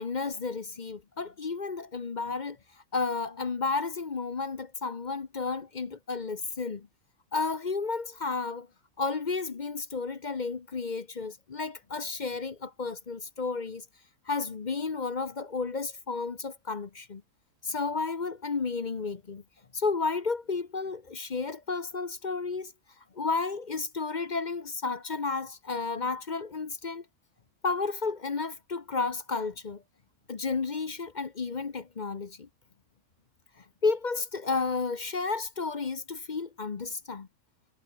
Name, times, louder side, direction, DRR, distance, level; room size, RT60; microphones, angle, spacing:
voice 1, 0.0-2.6 2.9-6.9 7.3-8.7 9.0-13.8 14.3-17.2 17.6-19.4 19.7-22.7 23.2-27.0 27.6-29.8 30.3-32.5 33.8-37.3, left 4 dB, 35° left, 0.9 m, -32 dB
omnidirectional pair, 1.6 m